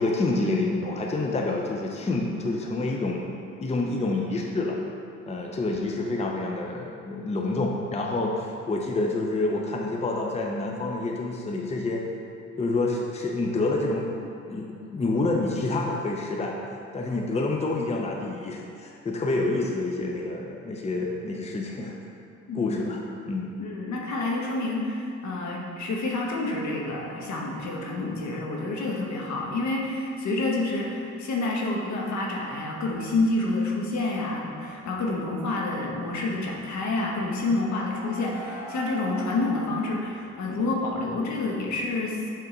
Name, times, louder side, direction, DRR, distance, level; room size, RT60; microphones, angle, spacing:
voice 1, 0.0-3.2 3.6-4.8 5.3-12.0 12.6-14.1 14.5-16.6 16.9-21.9 22.5-23.0 23.3-23.5, left 2 dB, 20° left, 0 dB, 0.7 m, -28 dB
voice 2, 22.5-22.9 23.6-42.2, left 2 dB, 65° left, -2 dB, 1.2 m, -28 dB
sound 1, 34.0-39.8, right 1 dB, 10° right, 1.2 m, -45 dB
6.0 x 3.6 x 5.9 m, 2.6 s
cardioid pair, 90°, 30 cm